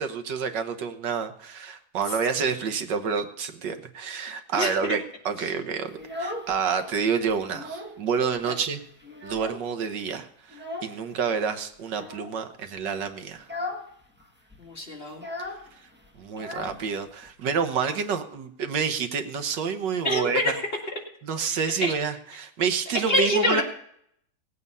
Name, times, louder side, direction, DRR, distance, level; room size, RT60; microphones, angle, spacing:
voice 1, 0.0-8.8 9.2-13.5 16.2-20.4 21.2-23.6, right 6 dB, 85° right, 8 dB, 1.8 m, -28 dB
voice 2, 4.5-5.0 5.4-5.5 14.6-15.2 20.0-20.6 21.5-21.9 23.1-23.6, left 1 dB, 35° left, 0 dB, 2.4 m, -26 dB
Child speech kid speaking, 5.9-6.9 7.3-8.0 8.3-8.4 8.8-9.9 10.5-11.0 11.9-12.4 12.8-13.0 13.4-13.9 14.2-14.3 14.5-17.3, left 2 dB, 5° right, 1.4 m, -37 dB
18.5 x 8.4 x 5.5 m, 0.70 s
omnidirectional pair, 1.9 m